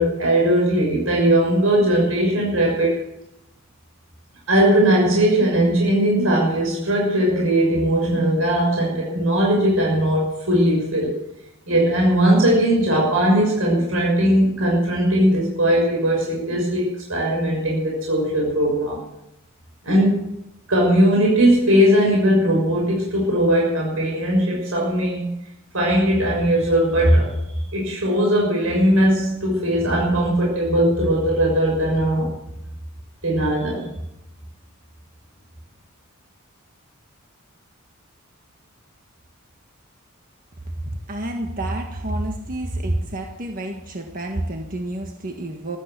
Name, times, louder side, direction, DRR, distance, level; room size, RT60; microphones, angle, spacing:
voice 1, 0.0-3.0 4.5-11.2 11.7-19.0 19.8-20.2 20.7-25.3 25.7-27.3 27.7-32.3 33.2-33.8, right 1 dB, 75° right, -2 dB, 6.4 m, -19 dB
voice 2, 41.1-45.8, right 1 dB, 40° right, 3 dB, 1.6 m, -28 dB
15.0 x 13.5 x 6.9 m, 0.85 s
head